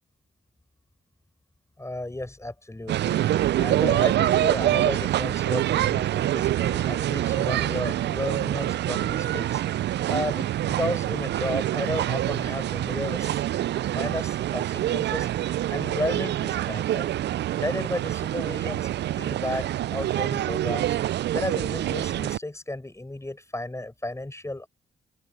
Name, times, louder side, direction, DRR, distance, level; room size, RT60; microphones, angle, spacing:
voice 1, 1.8-3.2 3.5-9.6 10.1-13.5 13.9-17.1 17.5-21.0 21.3-24.7, left 1 dB, 15° left, 5.2 m, -33 dB
sound 1, 2.9-22.4, right 13 dB, 60° right, 0.4 m, -26 dB
sound 2, 4.3-9.6, right 1 dB, 10° right, 4.2 m, -49 dB
open air
hypercardioid pair, 45°, 21 cm